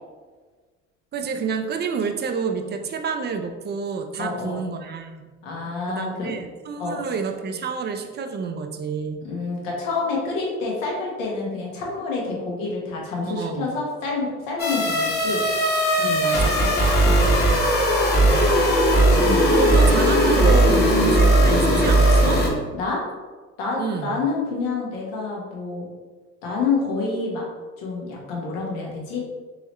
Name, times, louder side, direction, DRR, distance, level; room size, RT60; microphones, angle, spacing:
voice 1, 1.1-5.3 5.9-9.3 13.3-13.7 16.0-16.7 19.5-22.4 23.8-24.2, right 5 dB, 30° right, 6 dB, 0.5 m, -29 dB
voice 2, 4.2-4.6 5.4-6.3 6.8-7.0 9.2-15.4 17.0-17.5 18.0-18.6 19.1-19.5 22.7-23.0 23.6-25.9 26.4-27.4 27.8-29.2, left 4 dB, 80° left, -2 dB, 1.2 m, -28 dB
sound 1, 14.6-22.5, right 1 dB, 25° left, 1.0 m, -18 dB
3.9 x 2.9 x 3.1 m, 1.4 s
hypercardioid pair, 75°, 37 cm